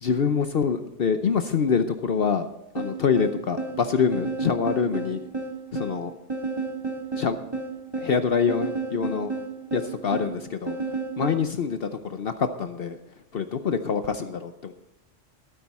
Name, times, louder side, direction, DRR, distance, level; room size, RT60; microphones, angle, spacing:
voice 1, 0.0-2.5 2.7-5.3 5.7-6.1 7.2-7.4 8.0-9.3 9.7-10.8 11.2-13.0 13.3-14.7, left 6 dB, 60° left, 9 dB, 0.9 m, -25 dB
sound 1, 2.8-11.5, right 3 dB, 20° right, 1.7 m, -32 dB
13.0 x 13.0 x 4.2 m, 0.90 s
omnidirectional pair, 1.2 m